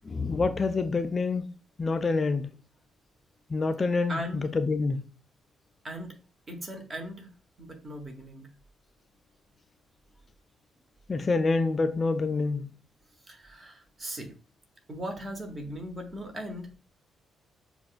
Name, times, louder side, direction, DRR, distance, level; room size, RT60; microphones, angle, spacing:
voice 1, 0.0-1.5 1.8-2.5 3.5-5.0 11.1-12.7, left 3 dB, 35° left, 0.4 m, -27 dB
voice 2, 4.1-4.5 5.8-6.1 6.5-7.3 7.6-8.5 13.3-14.3 14.9-16.7, right 1 dB, 35° right, 1.0 m, -38 dB
6.9 x 2.3 x 2.5 m
figure-of-eight pair, 40°, 0 cm